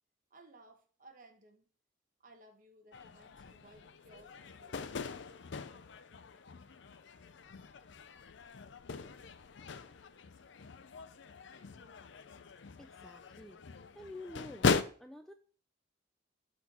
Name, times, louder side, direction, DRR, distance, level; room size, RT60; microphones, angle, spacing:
voice 1, 0.3-1.7 2.2-4.9, right 2 dB, 45° right, 5 dB, 1.2 m, -59 dB
sound 1, 2.9-14.8, left 5 dB, 65° left, 0.5 m, -39 dB
voice 2, 12.8-14.7 15.0-15.3, left 1 dB, ahead, 6 dB, 0.4 m, -49 dB
12.0 x 4.5 x 2.9 m, 0.42 s
head